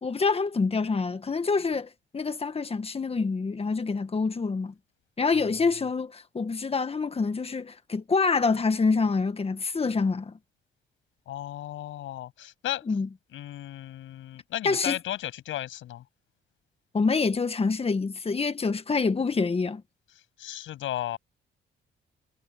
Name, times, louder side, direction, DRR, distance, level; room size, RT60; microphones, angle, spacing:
voice 1, 0.0-4.7 5.2-10.4 12.9-13.1 14.6-15.0 16.9-19.8, left 4 dB, 30° left, 1.7 m, -26 dB
voice 2, 11.3-12.8 13.3-16.0 20.4-21.2, left 13 dB, 80° left, 7.7 m, -34 dB
cardioid pair, 90°, 20 cm